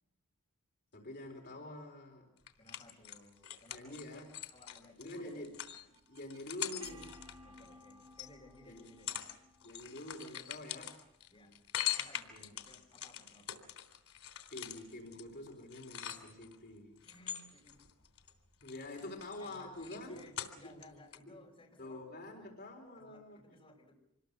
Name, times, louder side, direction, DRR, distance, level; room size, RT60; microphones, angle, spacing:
voice 1, 0.9-2.3 3.7-4.4 5.0-5.5 6.1-7.2 8.7-8.9 9.6-11.0 12.3-12.5 14.5-17.0 18.6-20.2 20.7-20.8 21.3-21.4 21.8-23.4, left 1 dB, 45° left, 1 dB, 4.2 m, -47 dB
sound 1, 2.5-8.3 8.8-9.4 9.6-16.6 17.0-18.3 18.6-20.9 21.1-21.2, left 11 dB, 90° left, 3.5 m, -43 dB
voice 2, 2.6-5.5 7.4-9.1 11.3-11.6 11.9-13.7 17.0-17.8 19.4-22.0 22.4-22.6 23.0-23.9, left 1 dB, 25° left, -1 dB, 5.2 m, -60 dB
sound 2, 5.4-11.2, equal, 25° right, 4.3 m, -59 dB
26.5 x 21.5 x 6.8 m, 0.80 s
head